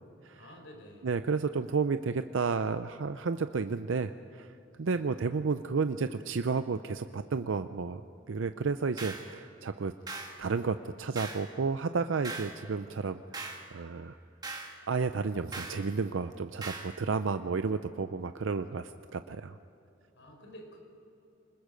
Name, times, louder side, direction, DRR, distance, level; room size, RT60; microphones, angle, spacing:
voice 1, 0.3-1.1 4.8-5.0 20.1-20.8, equal, 75° left, 2 dB, 4.5 m, -50 dB
voice 2, 1.0-4.5 4.8-8.0 8.3-14.2 14.9-19.6, right 4 dB, 80° right, 10 dB, 0.5 m, -32 dB
sound 1, 9.0-9.3 10.1-10.4 11.1-11.5 12.2-12.6 13.3-13.7 14.4-14.7 15.5-15.8 16.6-16.9, right 3 dB, 20° right, 1.7 m, -40 dB
25.5 x 20.5 x 5.2 m, 2.9 s
head